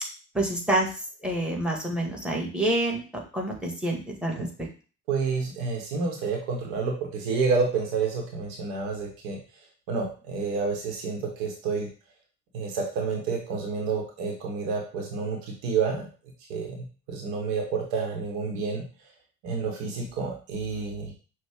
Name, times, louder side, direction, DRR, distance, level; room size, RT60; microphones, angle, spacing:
voice 1, 0.3-0.9 1.2-4.5, right 1 dB, ahead, 0 dB, 1.6 m, -27 dB
voice 2, 5.1-9.4 9.9-11.9 12.5-16.1 16.5-18.8 19.4-21.1, right 5 dB, 75° right, 1 dB, 1.2 m, -29 dB
6.0 x 2.4 x 3.6 m, 0.36 s
figure-of-eight pair, 45°, 43 cm